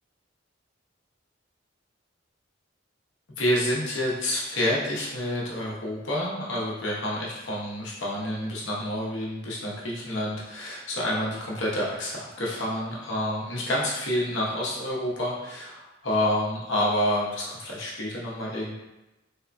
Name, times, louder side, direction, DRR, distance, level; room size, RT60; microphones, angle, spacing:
voice 1, 3.4-18.7, left 1 dB, 70° left, -4 dB, 0.8 m, -28 dB
3.5 x 2.2 x 2.5 m, 0.98 s
head